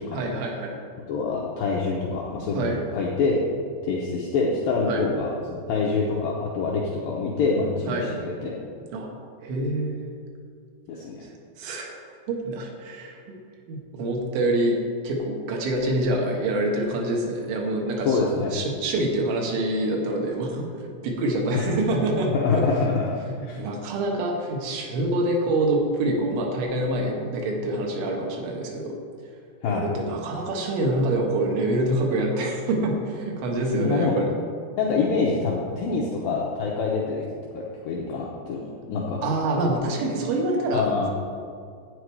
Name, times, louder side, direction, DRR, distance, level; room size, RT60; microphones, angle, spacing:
voice 1, 0.1-0.7 2.5-2.8 4.9-5.0 7.9-8.1 8.9-9.1 9.4-10.0 11.6-11.9 12.3-13.4 13.7-18.3 18.5-22.7 23.3-29.0 29.7-34.3 39.2-41.1, right 1 dB, 90° right, 0 dB, 3.8 m, -26 dB
voice 2, 1.1-3.4 3.8-8.6 10.9-11.2 18.0-18.6 21.5-21.7 22.3-23.1 23.4-23.7 29.6-29.9 33.8-34.2 34.8-37.2 37.5-39.2 40.7-41.1, left 4 dB, 75° left, -3 dB, 2.2 m, -26 dB
11.5 x 8.7 x 4.7 m, 2.3 s
omnidirectional pair, 5.2 m